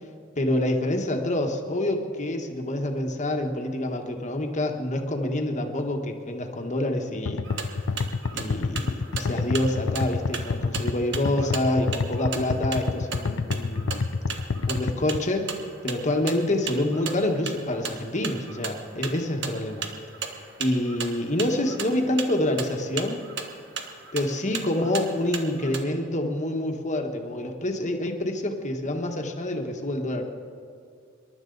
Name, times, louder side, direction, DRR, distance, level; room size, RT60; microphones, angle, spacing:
voice 1, 0.3-7.4 8.3-14.0 14.7-19.9 20.6-23.2 24.1-30.2, left 1 dB, 35° left, 4 dB, 1.5 m, -27 dB
sound 1, 7.3-15.2, left 4 dB, 75° left, 0.5 m, -28 dB
sound 2, 7.4-25.8, right 6 dB, 60° right, 1.3 m, -37 dB
26.5 x 12.0 x 4.0 m, 2.3 s
head